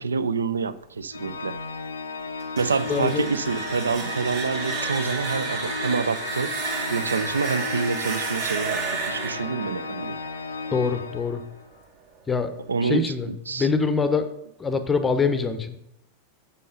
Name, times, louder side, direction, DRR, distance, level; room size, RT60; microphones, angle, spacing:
voice 1, 0.0-1.6 2.6-6.6 6.9-10.2 12.7-13.7, right 5 dB, 75° right, 14 dB, 0.4 m, -27 dB
Organ, 1.1-11.7, left 4 dB, 70° left, 0.4 m, -35 dB
sound 1, 2.4-11.2, right 4 dB, 50° right, 1.7 m, -32 dB
voice 2, 2.9-3.3 10.7-11.4 12.3-12.5 12.8-14.2 14.6-15.8, left 4 dB, 15° left, 10 dB, 0.6 m, -24 dB
6.4 x 5.4 x 5.2 m, 0.79 s
figure-of-eight pair, 90°, 0 cm